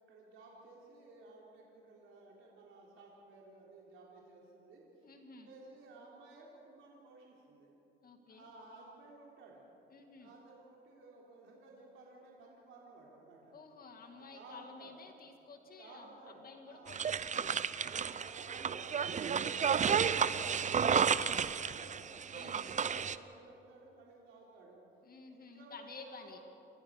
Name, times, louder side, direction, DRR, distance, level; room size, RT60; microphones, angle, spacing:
voice 1, 0.0-5.1 5.4-7.7 8.3-9.7 10.2-13.6 14.0-14.9 15.8-17.0 17.9-22.1 22.4-24.8 25.3-26.4, right 3 dB, 85° right, -3 dB, 3.6 m, -56 dB
voice 2, 5.0-5.5 8.0-8.5 9.9-10.3 13.5-17.6 22.3-22.7 25.0-26.4, left 4 dB, 50° left, 4 dB, 2.1 m, -53 dB
sound 1, 16.9-23.2, right 7 dB, 40° right, 0.7 m, -32 dB
29.0 x 14.0 x 6.5 m, 3.0 s
cardioid pair, 90°, 20 cm